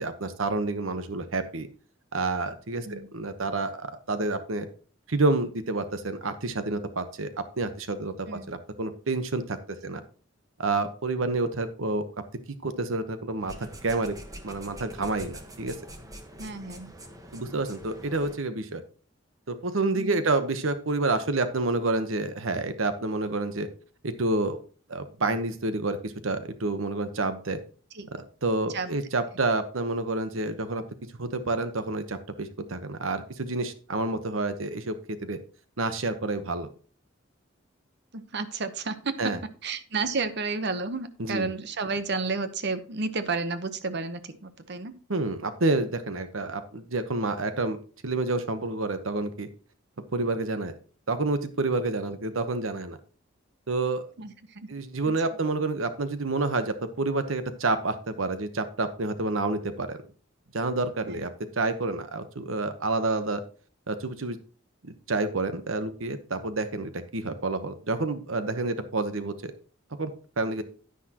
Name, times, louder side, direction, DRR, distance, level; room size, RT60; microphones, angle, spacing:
voice 1, 0.0-1.7 2.1-4.7 5.1-7.3 7.6-9.6 9.8-10.0 10.6-12.1 12.6-14.1 14.4-15.7 17.3-18.8 19.5-23.7 24.0-24.6 24.9-27.6 28.4-30.8 31.2-35.4 35.8-36.7 39.2-39.4 41.2-41.5 45.1-47.8 48.0-49.5 50.1-50.7 51.1-53.0 53.7-54.1 54.7-60.0 60.5-61.3 61.6-63.4 63.9-64.4 64.8-69.5 70.0-70.1 70.4-70.6, right 2 dB, 85° right, 10 dB, 1.1 m, -29 dB
sound 1, 13.4-18.4, right 1 dB, 20° right, 1.3 m, -45 dB
voice 2, 16.4-16.9 19.9-20.3 27.9-28.1 28.7-28.9 38.1-39.4 39.6-45.0 52.1-52.2 54.2-54.7 61.1-61.3, right 4 dB, 60° right, 11 dB, 1.0 m, -32 dB
10.0 x 10.0 x 3.0 m, 0.39 s
head